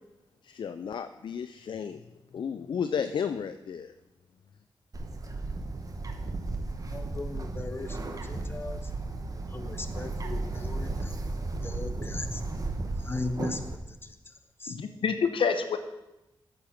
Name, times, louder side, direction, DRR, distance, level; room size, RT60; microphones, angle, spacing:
voice 1, 0.4-2.0 2.3-3.9, left 7 dB, 65° left, 10 dB, 0.4 m, -33 dB
Bird, 4.9-13.8, right 2 dB, 40° right, 1.1 m, -34 dB
voice 2, 6.9-8.8 9.5-11.1 11.6-12.4 13.1-13.6 14.6-14.7, left 2 dB, 25° left, 8 dB, 0.9 m, -37 dB
voice 3, 14.7-15.8, left 6 dB, 80° left, 8 dB, 0.9 m, -27 dB
8.6 x 6.6 x 5.8 m, 0.96 s
cardioid pair, 85°, 9 cm